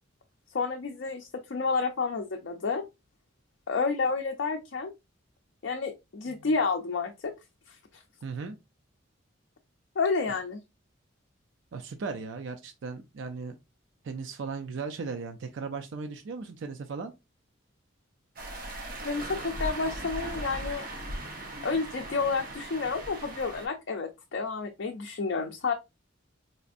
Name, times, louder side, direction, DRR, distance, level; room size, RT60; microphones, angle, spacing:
voice 1, 0.5-2.8 3.7-4.9 5.6-7.3 7.7-8.0 10.0-10.6 19.0-20.8 21.6-25.7, left 4 dB, 60° left, 0.5 m, -30 dB
voice 2, 8.2-8.6 11.7-13.6 14.0-17.1, right 4 dB, 65° right, 0.4 m, -37 dB
sound 1, 18.4-23.7, right 1 dB, 45° right, 0.9 m, -38 dB
4.2 x 2.5 x 2.4 m
head